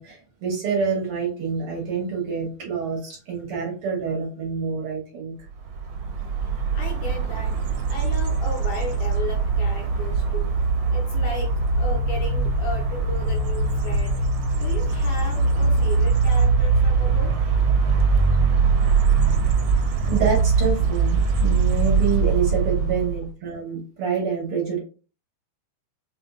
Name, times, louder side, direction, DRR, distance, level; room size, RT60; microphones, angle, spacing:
voice 1, 0.0-5.3 20.1-24.8, right 5 dB, 60° right, -2 dB, 1.7 m, -27 dB
sound 1, 5.7-23.3, right 4 dB, 75° right, 1.9 m, -21 dB
voice 2, 6.4-7.6 7.9-10.5 10.9-14.2 14.5-17.5, left 3 dB, 80° left, 0 dB, 1.3 m, -35 dB
5.6 x 2.6 x 2.4 m, 0.36 s
omnidirectional pair, 3.5 m